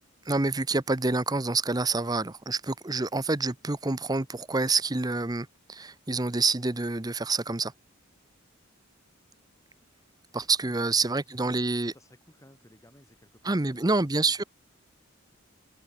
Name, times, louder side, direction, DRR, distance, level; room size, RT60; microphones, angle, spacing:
voice 1, 0.2-7.7 10.3-11.9 13.4-14.4, right 3 dB, 20° right, 0.8 m, -27 dB
voice 2, 10.6-14.0 14.2-14.5, left 1 dB, 15° left, 5.1 m, -57 dB
head